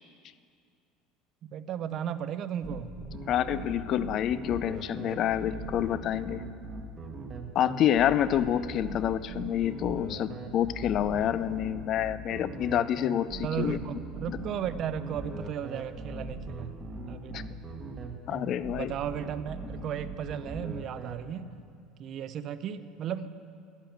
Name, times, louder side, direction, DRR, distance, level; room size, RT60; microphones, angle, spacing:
voice 1, 1.5-2.9 10.1-10.3 13.4-16.7 17.1-17.7 18.7-21.5 22.0-23.3, right 9 dB, 40° right, 13 dB, 0.5 m, -35 dB
sound 1, 2.6-21.1, right 2 dB, 20° right, 1.1 m, -40 dB
voice 2, 3.2-6.4 7.5-13.8 14.3-14.4 17.3-17.4 18.3-18.9, left 10 dB, 40° left, 16 dB, 0.4 m, -28 dB
11.5 x 11.0 x 7.8 m, 2.3 s
cardioid pair, 165°, 0 cm